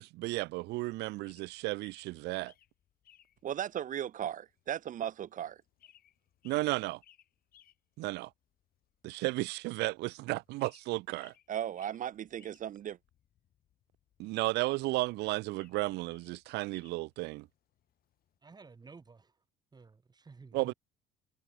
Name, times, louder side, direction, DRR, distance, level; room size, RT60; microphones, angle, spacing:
voice 1, 0.0-2.5 6.4-7.0 8.0-8.3 9.0-11.3 14.2-17.5 20.5-20.7, right 20 dB, 85° right, 0.6 m, -33 dB
sound 1, 0.6-18.4, left 11 dB, 60° left, 6.7 m, -67 dB
voice 2, 3.4-5.6 11.5-13.0, right 10 dB, 50° right, 1.1 m, -36 dB
voice 3, 18.4-19.4 19.7-20.7, right 4 dB, 25° right, 3.3 m, -53 dB
cardioid pair, 110°, 17 cm